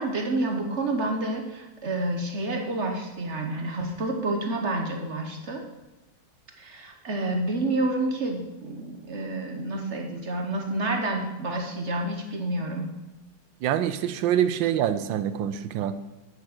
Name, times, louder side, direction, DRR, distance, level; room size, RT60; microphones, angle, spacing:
voice 1, 0.0-5.6 6.6-12.9, right 2 dB, 45° right, 3 dB, 1.0 m, -29 dB
voice 2, 13.6-16.0, right 10 dB, 75° right, 12 dB, 1.3 m, -25 dB
8.5 x 6.4 x 6.5 m, 1.1 s
omnidirectional pair, 2.3 m